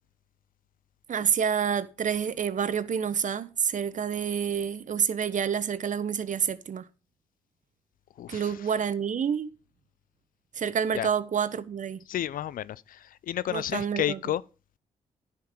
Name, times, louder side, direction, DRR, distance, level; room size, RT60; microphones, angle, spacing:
voice 1, 1.1-6.9 8.3-9.5 10.6-12.0 13.5-14.2, right 7 dB, 60° right, 1.0 m, -28 dB
voice 2, 8.2-8.5 10.9-11.1 12.1-14.4, left 11 dB, 70° left, 0.5 m, -31 dB
10.5 x 5.5 x 6.7 m
supercardioid pair, 45°, 15 cm